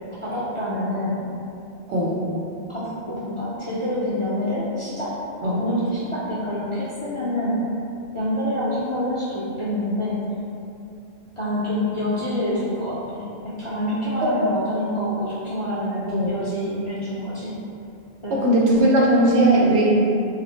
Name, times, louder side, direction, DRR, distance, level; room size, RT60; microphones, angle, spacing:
voice 1, 0.2-1.2 2.7-5.1 5.4-7.6 8.1-10.2 11.4-17.5 18.2-18.3 18.7-18.9, left 1 dB, 45° left, -10 dB, 0.4 m, -27 dB
voice 2, 18.3-19.9, right 1 dB, 90° right, -5 dB, 0.9 m, -18 dB
2.4 x 2.0 x 3.8 m, 2.6 s
omnidirectional pair, 1.1 m